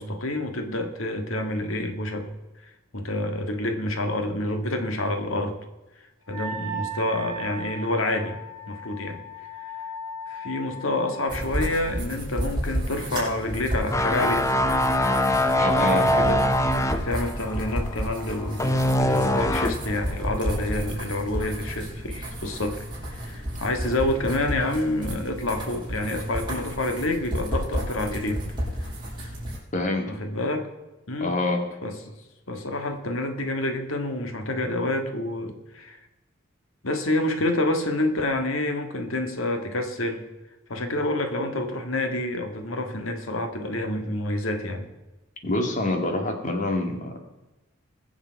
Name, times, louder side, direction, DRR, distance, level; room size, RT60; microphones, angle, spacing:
voice 1, 0.0-2.3 2.9-5.6 6.3-8.4 8.7-9.2 10.3-14.5 15.7-16.5 16.9-22.8 23.1-28.4 30.1-30.7 31.1-31.3 31.8-32.0 32.5-36.0 36.8-40.2 40.7-44.9, left 1 dB, 85° left, 5 dB, 1.8 m, -28 dB
Wind instrument woodwind instrument, 6.3-11.8, right 1 dB, 40° right, 2.2 m, -37 dB
sound 1, 11.3-29.6, equal, 20° right, 5.4 m, -32 dB
sound 2, 13.9-19.9 20.3-20.5, left 1 dB, 15° left, 0.6 m, -23 dB
voice 2, 15.6-16.0 29.7-30.0 31.2-31.6 45.4-47.2, left 2 dB, 40° left, 3 dB, 2.2 m, -26 dB
21.0 x 7.2 x 4.7 m, 1.1 s
head